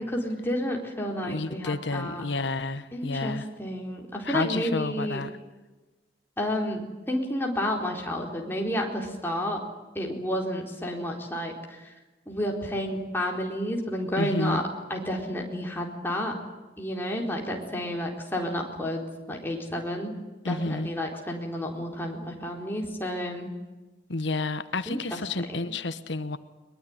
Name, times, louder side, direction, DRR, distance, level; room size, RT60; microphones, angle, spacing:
voice 1, 0.0-2.2 2.9-5.2 6.4-9.6 9.9-11.9 12.3-14.6 14.9-16.4 16.8-19.0 19.3-20.2 20.4-23.5 24.9-25.2, equal, 10° left, 0 dB, 4.3 m, -31 dB
voice 2, 1.3-3.5 4.2-5.4 14.2-14.6 20.4-20.9 24.1-26.4, left 3 dB, 80° left, 12 dB, 1.1 m, -30 dB
22.5 x 22.0 x 9.8 m, 1.2 s
head